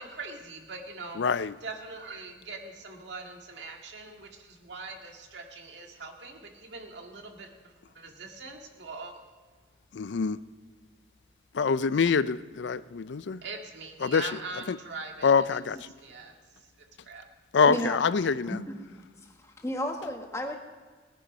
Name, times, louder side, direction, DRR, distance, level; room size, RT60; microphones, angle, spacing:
voice 1, 0.0-1.2 1.6-4.3 4.6-7.5 8.0-9.1 13.4-15.3 16.0-16.3 17.1-17.2, right 3 dB, 75° right, 2 dB, 2.0 m, -42 dB
voice 2, 1.2-1.5 10.0-10.4 11.6-13.4 14.0-14.3 14.7-14.8 15.2-15.8 17.5-18.5, left 5 dB, 75° left, 16 dB, 0.5 m, -25 dB
voice 3, 17.7-18.0 18.5-18.8 19.2-20.6, left 1 dB, 15° left, 2 dB, 1.5 m, -33 dB
19.0 x 10.0 x 5.3 m, 1.4 s
head